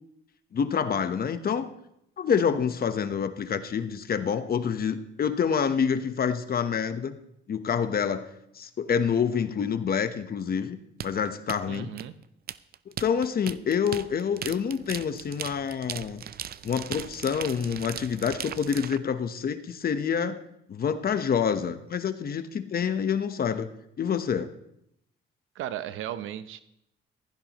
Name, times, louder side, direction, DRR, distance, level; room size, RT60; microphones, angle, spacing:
voice 1, 0.5-1.7 2.2-7.2 7.5-8.2 8.6-10.8 11.0-11.9 13.0-16.2 16.6-20.4 20.7-23.7 24.0-24.5, left 7 dB, 50° left, 10 dB, 1.1 m, -27 dB
sound 1, 11.0-19.0, right 10 dB, 50° right, 0.5 m, -38 dB
voice 2, 11.7-12.1 25.6-26.6, right 11 dB, 85° right, 12 dB, 0.8 m, -35 dB
16.0 x 15.0 x 3.1 m, 0.77 s
cardioid pair, 90°, 20 cm